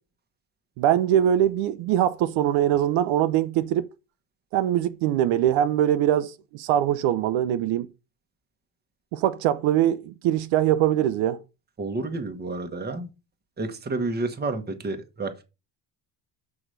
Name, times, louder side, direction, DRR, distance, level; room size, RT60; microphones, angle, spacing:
voice 1, 0.8-3.9 4.5-7.9 9.1-11.4, right 11 dB, 70° right, 0.8 m, -22 dB
voice 2, 11.8-13.1 13.6-15.4, right 3 dB, 20° right, 1.3 m, -30 dB
6.1 x 4.9 x 6.5 m
cardioid pair, 125°, 49 cm